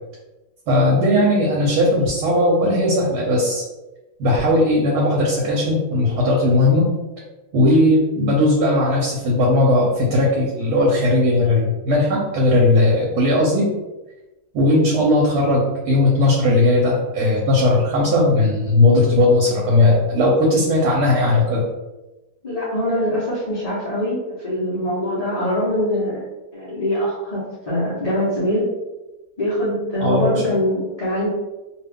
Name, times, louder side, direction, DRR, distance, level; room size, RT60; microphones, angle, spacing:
voice 1, 0.7-3.6 4.2-6.9 7.5-13.7 14.5-21.6 30.0-30.3, left 1 dB, 80° right, -3 dB, 1.2 m, -17 dB
voice 2, 22.4-26.2 26.5-28.7 29.4-31.3, equal, 35° left, -10 dB, 0.6 m, -23 dB
2.6 x 2.4 x 3.4 m, 1.1 s
omnidirectional pair, 1.7 m